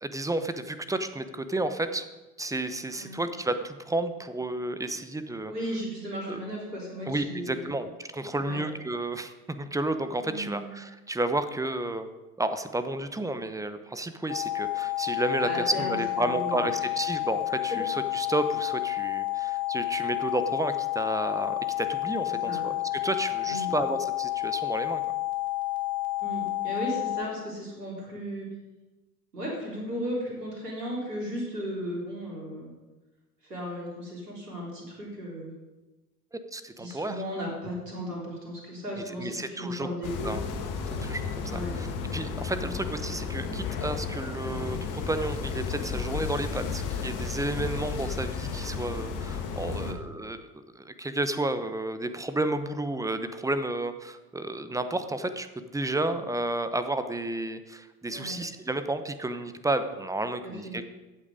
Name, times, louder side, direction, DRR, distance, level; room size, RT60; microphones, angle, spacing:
voice 1, 0.0-2.1 2.4-5.5 6.3-6.4 7.1-12.1 12.4-22.7 23.0-25.0 36.3-37.2 39.0-39.9 40.2-40.4 41.0-50.5 50.7-60.9, right 2 dB, 5° right, 10 dB, 0.9 m, -31 dB
voice 2, 5.5-7.7 8.4-8.6 10.2-10.7 15.4-16.7 17.7-17.8 22.4-22.6 23.4-23.7 26.2-28.5 29.3-32.7 33.4-35.5 36.8-40.5 41.4-41.8 42.5-42.8 49.6-49.9 58.1-58.3 60.4-60.8, equal, 80° right, -3 dB, 4.1 m, -36 dB
sound 1, 14.3-27.2, left 17 dB, 65° left, 2.0 m, -30 dB
sound 2, 40.0-49.9, left 5 dB, 40° left, 1.9 m, -33 dB
15.0 x 8.6 x 5.1 m, 1.1 s
figure-of-eight pair, 70°, 46 cm